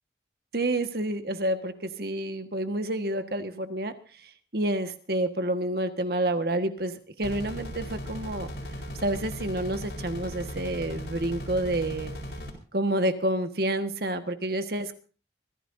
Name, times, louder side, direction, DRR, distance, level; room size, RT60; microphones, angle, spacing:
voice 1, 0.5-1.7 2.0-3.9 4.5-8.5 9.0-12.1 12.7-14.9, right 1 dB, 55° right, 8 dB, 1.5 m, -29 dB
sound 1, 7.2-12.5, equal, 70° left, 4.4 m, -37 dB
25.0 x 15.5 x 2.7 m, 0.37 s
head